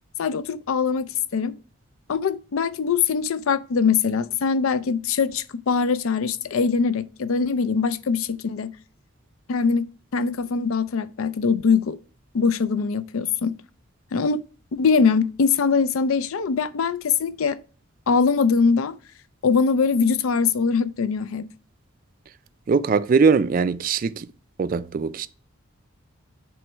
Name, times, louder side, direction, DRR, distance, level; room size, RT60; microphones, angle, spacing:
voice 1, 0.2-1.6 2.1-8.7 9.5-12.0 12.3-13.6 14.1-14.5 14.8-17.6 18.1-18.9 19.4-21.5, left 5 dB, 80° left, 0.4 m, -22 dB
voice 2, 22.7-24.3 24.6-25.3, right 5 dB, 40° right, 0.3 m, -21 dB
7.6 x 3.1 x 4.4 m
head